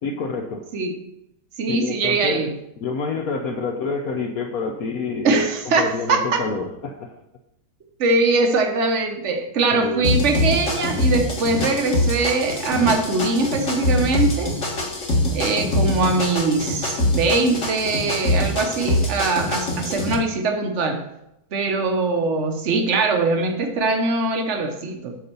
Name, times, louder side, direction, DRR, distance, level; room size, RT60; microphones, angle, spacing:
voice 1, 0.0-0.7 1.7-2.5 2.8-7.1 9.7-10.1, left 4 dB, 70° left, 4 dB, 0.8 m, -27 dB
voice 2, 1.6-2.5 5.2-6.4 8.0-14.6 15.3-21.0 21.5-25.2, right 3 dB, 50° right, 4 dB, 0.9 m, -22 dB
sound 1, 10.0-20.1, left 1 dB, 40° left, 1.6 m, -23 dB
7.6 x 4.1 x 6.8 m, 0.82 s
omnidirectional pair, 2.3 m